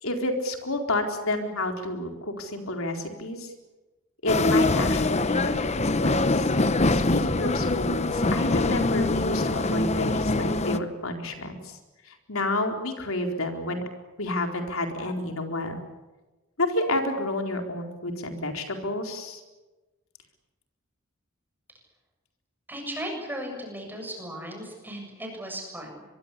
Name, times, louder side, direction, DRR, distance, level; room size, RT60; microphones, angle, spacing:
voice 1, 0.0-3.5 4.2-6.5 6.9-11.8 12.0-13.8 14.2-15.8 16.6-19.4, left 1 dB, 75° left, 4 dB, 4.1 m, -30 dB
sound 1, 4.3-10.8, left 2 dB, 30° left, 0.9 m, -24 dB
voice 2, 22.7-26.0, equal, 10° right, 2 dB, 7.4 m, -36 dB
25.0 x 22.5 x 8.4 m, 1.1 s
head